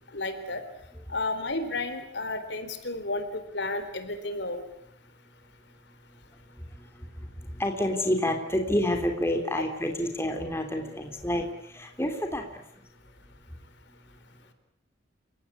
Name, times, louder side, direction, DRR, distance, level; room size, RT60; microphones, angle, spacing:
voice 1, 0.1-0.6 1.1-4.6, left 2 dB, 65° left, 9 dB, 3.8 m, -32 dB
voice 2, 7.5-12.5, left 1 dB, 15° left, 4 dB, 3.2 m, -28 dB
29.5 x 17.5 x 9.7 m, 0.74 s
head